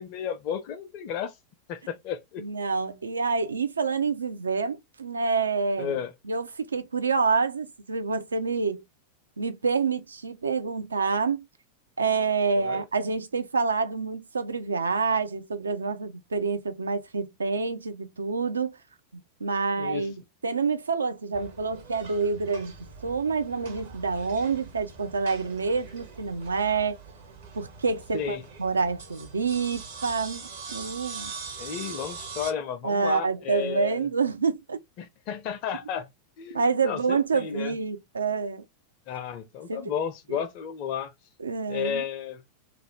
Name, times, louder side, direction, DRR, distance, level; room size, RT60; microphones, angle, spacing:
voice 1, 0.0-1.3 1.7-2.4 5.8-6.1 12.5-12.8 19.8-20.1 28.1-28.4 31.6-34.0 35.0-36.1 36.4-37.8 39.1-41.1 41.7-42.4, left 8 dB, 45° left, 0.4 m, -33 dB
voice 2, 2.4-8.8 9.4-11.4 12.0-18.8 19.4-22.7 23.0-27.0 27.5-31.3 32.8-34.8 36.5-38.6 39.7-39.9 40.3-40.4 41.4-42.0, right 4 dB, 75° right, 0.4 m, -27 dB
sound 1, 21.3-32.5, right 5 dB, 60° right, 0.8 m, -42 dB
2.4 x 2.0 x 3.0 m
figure-of-eight pair, 90°, 0 cm